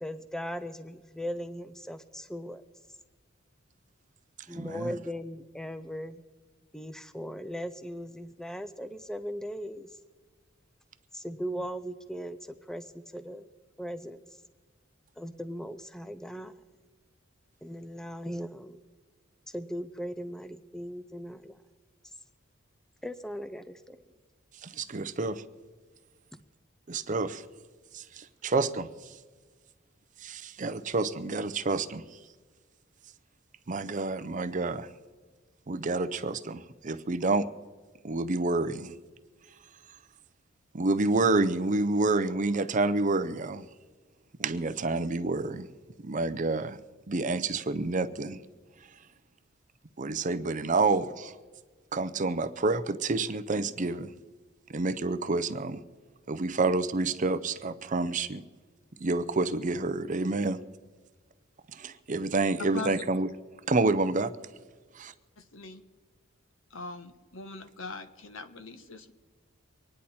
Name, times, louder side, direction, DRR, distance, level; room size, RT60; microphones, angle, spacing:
voice 1, 0.0-2.6 4.5-6.2 6.7-9.9 11.1-12.4 12.7-13.5 13.8-14.2 15.2-16.5 17.6-18.8 19.5-21.6 23.0-24.0, equal, 5° left, 11 dB, 0.5 m, -38 dB
voice 2, 4.5-4.9 24.6-25.4 26.9-27.4 27.9-28.9 30.2-32.0 33.7-34.9 35.7-37.5 38.0-39.0 40.7-43.7 44.4-45.7 46.0-46.8 47.1-48.4 50.0-51.3 51.9-54.1 54.7-55.8 56.3-58.4 59.0-60.6 61.7-63.3 63.7-64.3 65.0-65.1, right 3 dB, 40° right, 11 dB, 0.6 m, -28 dB
voice 3, 62.6-63.0 65.4-65.8 66.7-69.1, left 3 dB, 70° left, 9 dB, 1.2 m, -41 dB
25.0 x 10.0 x 4.3 m, 1.4 s
head